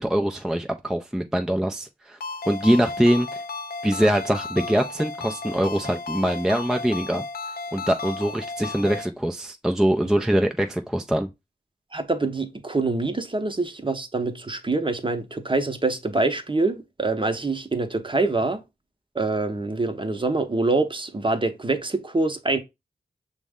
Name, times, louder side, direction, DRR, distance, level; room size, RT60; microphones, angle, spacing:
voice 1, 0.0-2.2 2.5-3.4 3.8-7.2 7.7-11.3, equal, 5° right, 0.4 m, -23 dB
Ringtone, 2.2-9.1, left 3 dB, 65° left, 0.4 m, -34 dB
voice 2, 11.9-18.6 19.1-22.6, right 3 dB, 30° right, 0.8 m, -25 dB
6.0 x 2.1 x 3.5 m
cardioid pair, 50°, 17 cm